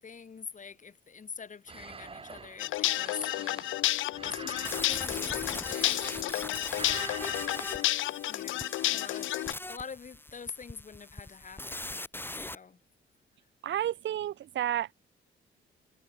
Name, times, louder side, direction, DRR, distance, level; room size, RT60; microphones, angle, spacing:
voice 1, 0.0-3.7 4.2-7.1 8.3-9.3 9.7-12.0 12.3-12.8, left 5 dB, 40° left, 6.8 m, -45 dB
sound 1, 1.7-6.4 6.7-7.9, right 4 dB, 30° right, 1.5 m, -46 dB
sound 2, 2.6-9.5, left 15 dB, 75° left, 0.6 m, -31 dB
sound 3, 4.6-12.5, left 1 dB, 10° left, 4.6 m, -41 dB
voice 2, 13.6-14.9, right 11 dB, 70° right, 1.7 m, -31 dB
cardioid pair, 90°, 20 cm